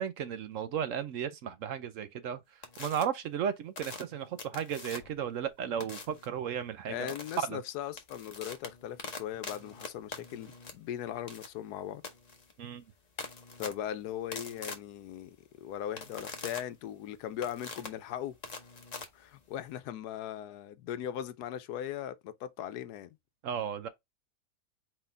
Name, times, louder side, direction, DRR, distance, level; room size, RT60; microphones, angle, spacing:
voice 1, 0.0-2.4 2.8-7.1 7.5-7.6 12.6-12.8 23.4-23.9, right 8 dB, 65° right, 0.9 m, -35 dB
sound 1, 2.6-3.0 3.8-5.2 5.8-6.3 7.1-7.4 7.8-19.7, left 4 dB, 30° left, 0.9 m, -44 dB
voice 2, 6.9-12.0 13.6-18.4 19.1-23.1, left 10 dB, 85° left, 1.2 m, -39 dB
4.5 x 3.9 x 2.6 m
omnidirectional pair, 1.6 m